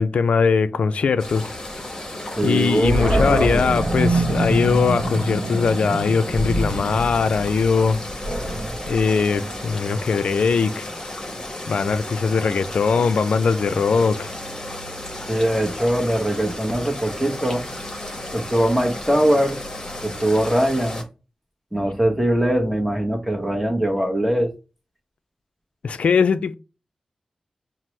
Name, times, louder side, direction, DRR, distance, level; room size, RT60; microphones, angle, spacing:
voice 1, 0.0-1.6 2.4-8.0 8.9-10.9 11.7-14.3 25.8-26.5, left 5 dB, 75° left, 0.3 m, -20 dB
sound 1, 1.2-21.0, left 1 dB, 30° left, 1.0 m, -34 dB
voice 2, 2.4-3.8 15.3-17.6 18.3-19.6 20.0-21.0 21.7-24.5, right 1 dB, ahead, 0.9 m, -21 dB
Animal, 2.8-9.9, right 1 dB, 60° right, 0.7 m, -25 dB
5.8 x 2.0 x 3.1 m
wide cardioid pair, 90°, 2 cm